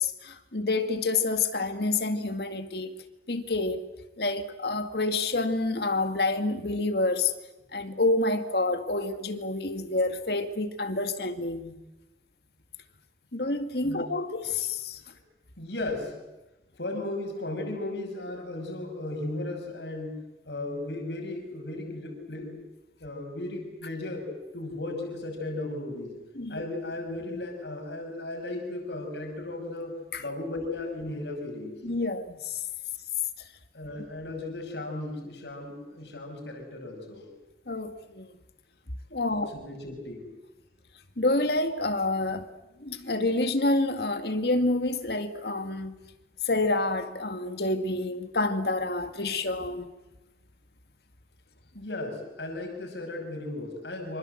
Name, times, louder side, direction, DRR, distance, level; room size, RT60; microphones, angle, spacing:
voice 1, 0.0-3.0 3.3-3.8 4.2-7.3 7.7-11.8 13.3-15.0 26.4-26.6 30.1-30.2 31.8-32.6 37.7-38.3 39.1-39.5 41.2-42.5 42.8-46.0 46.4-49.9, left 2 dB, 65° left, 2.1 m, -28 dB
voice 2, 15.6-16.2 16.8-20.2 20.4-22.6 23.0-24.3 24.5-26.2 26.5-31.8 33.7-37.3 39.3-40.3 51.7-54.2, left 2 dB, 80° left, 6.0 m, -36 dB
26.5 x 26.0 x 7.9 m
head